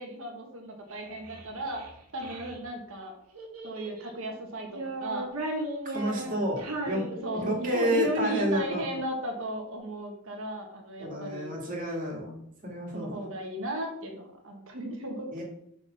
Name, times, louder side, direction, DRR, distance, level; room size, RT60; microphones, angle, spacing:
voice 1, 0.0-1.8 2.1-3.1 3.6-5.3 6.0-6.5 7.2-11.5 12.9-15.4, right 1 dB, 65° right, 2 dB, 1.5 m, -35 dB
Child speech kid speaking, 0.9-2.6 3.3-4.2 4.7-7.8, right 1 dB, 90° right, 1.9 m, -37 dB
voice 2, 5.9-7.1 7.3-8.8 11.0-12.4 12.6-13.2 15.3-15.4, equal, 35° right, -1 dB, 2.3 m, -30 dB
6.5 x 4.2 x 6.2 m, 0.72 s
head